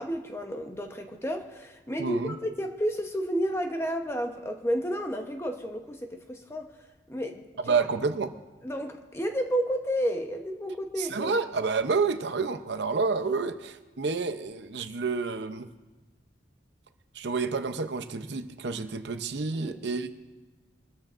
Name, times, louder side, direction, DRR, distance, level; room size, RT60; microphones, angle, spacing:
voice 1, 0.0-6.7 7.1-7.8 8.6-11.3 19.6-19.8, equal, 15° left, 0.9 m, -31 dB
voice 2, 2.0-2.3 7.6-8.3 11.0-15.7 17.1-20.1, right 4 dB, 70° right, 0.7 m, -29 dB
23.0 x 13.5 x 2.6 m
head